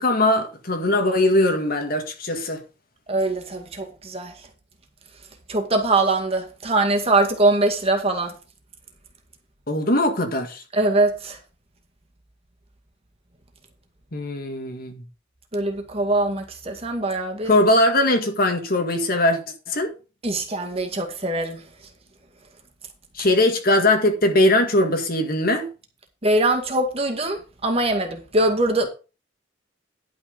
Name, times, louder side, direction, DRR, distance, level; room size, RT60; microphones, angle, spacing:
voice 1, 0.0-2.6 9.7-10.6 14.1-15.0 17.5-19.4 19.7-19.9 23.2-25.7, left 1 dB, 50° left, 1.8 m, -20 dB
voice 2, 3.1-4.3 5.5-8.3 10.7-11.4 15.5-17.5 20.2-21.6 26.2-28.9, right 2 dB, 30° right, 2.1 m, -22 dB
11.0 x 6.3 x 5.3 m
head